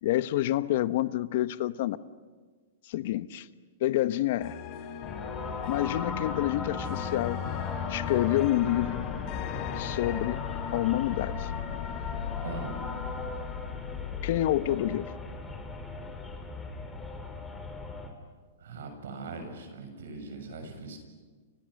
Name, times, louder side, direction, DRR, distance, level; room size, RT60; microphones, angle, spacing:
voice 1, 0.0-2.0 2.9-3.5 3.8-4.6 5.7-7.4 7.9-9.0 9.8-10.4 10.7-11.5 14.2-15.1, left 14 dB, 55° left, 1.1 m, -28 dB
sound 1, 4.4-14.5, left 10 dB, 40° left, 3.4 m, -37 dB
sound 2, 5.0-18.1, left 3 dB, 10° left, 3.9 m, -39 dB
sound 3, 9.0-14.4, left 9 dB, 70° left, 5.0 m, -40 dB
voice 2, 12.4-12.7 18.6-21.0, right 4 dB, 75° right, 7.1 m, -40 dB
30.0 x 30.0 x 6.6 m
hypercardioid pair, 140°, 0 cm